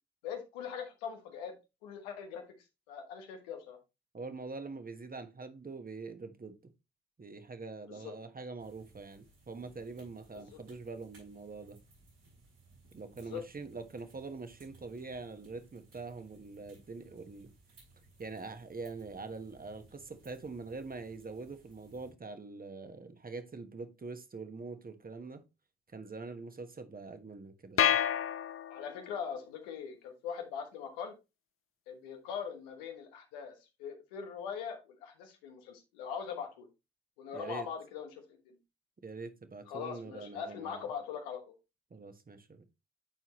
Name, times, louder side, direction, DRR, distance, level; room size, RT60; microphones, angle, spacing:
voice 1, 0.2-1.5 1.8-2.4 2.9-3.8 7.9-8.1 10.5-10.6 13.2-13.4 28.7-31.1 31.9-36.7 37.2-38.6 39.7-41.5, left 7 dB, 85° left, 1.2 m, -41 dB
voice 2, 4.1-6.7 7.2-11.8 12.9-17.5 18.2-25.4 25.9-28.0 37.3-37.7 39.0-40.9 41.9-42.7, right 3 dB, 30° right, 1.3 m, -44 dB
sound 1, 8.6-22.1, right 2 dB, 85° right, 5.2 m, -62 dB
sound 2, 27.8-29.1, left 9 dB, 45° left, 0.6 m, -29 dB
10.0 x 4.5 x 3.1 m
hypercardioid pair, 40°, 29 cm